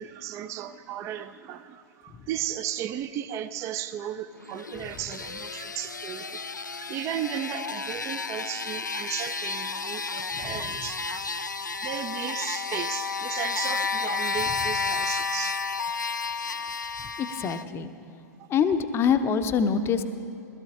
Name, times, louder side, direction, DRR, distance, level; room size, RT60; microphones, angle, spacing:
voice 1, 0.0-6.4 6.8-11.3 11.8-15.6 16.6-16.7, right 11 dB, 30° right, 11 dB, 0.5 m, -35 dB
sound 1, 4.4-17.6, left 4 dB, 90° left, 0.4 m, -32 dB
voice 2, 17.2-17.9 18.5-20.0, left 6 dB, 25° left, 9 dB, 0.7 m, -25 dB
20.5 x 13.5 x 2.9 m, 2.8 s
figure-of-eight pair, 95°, 10 cm